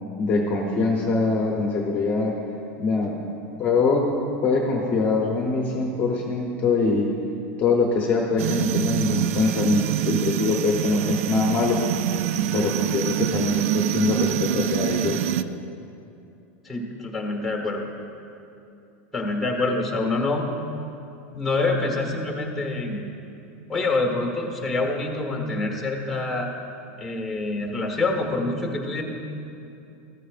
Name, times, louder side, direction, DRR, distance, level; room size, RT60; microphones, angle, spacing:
voice 1, 0.2-2.3 2.8-3.1 3.6-4.1 4.4-7.1 7.6-11.8 12.5-15.2, left 4 dB, 25° left, -1 dB, 0.8 m, -23 dB
sound 1, 8.4-15.4, right 11 dB, 75° right, 0.4 m, -25 dB
voice 2, 16.6-17.9 19.1-20.5 21.3-23.0 23.7-26.5 27.0-29.0, left 2 dB, ahead, 1 dB, 1.3 m, -26 dB
14.0 x 14.0 x 2.5 m, 2.7 s
supercardioid pair, 170°, 8 cm